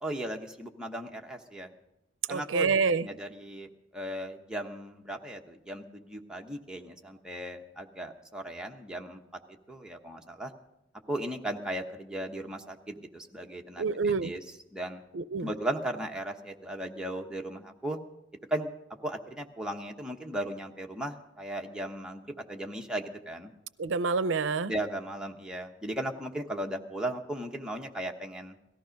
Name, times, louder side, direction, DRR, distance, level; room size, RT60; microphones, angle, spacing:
voice 1, 0.0-1.7 2.3-2.7 3.0-9.2 9.5-10.5 11.1-14.4 14.7-15.0 15.4-18.0 18.5-18.7 19.0-23.5 24.7-28.5, right 1 dB, 5° right, 1 dB, 1.0 m, -36 dB
voice 2, 2.3-3.1 13.8-14.3 15.1-15.5 23.8-24.7, right 4 dB, 85° right, 16 dB, 0.5 m, -27 dB
18.0 x 14.0 x 5.2 m, 0.87 s
head